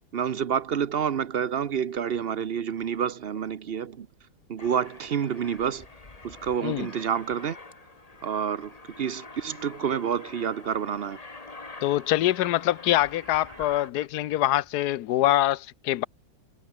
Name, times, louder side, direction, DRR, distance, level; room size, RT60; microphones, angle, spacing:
voice 1, 0.1-4.1 4.5-5.9 6.2-7.6 8.2-11.2, right 8 dB, 85° right, 0.5 m, -28 dB
Aircraft, 4.6-13.9, left 3 dB, 20° left, 1.7 m, -46 dB
voice 2, 11.8-16.0, left 14 dB, 65° left, 1.1 m, -24 dB
omnidirectional pair, 2.2 m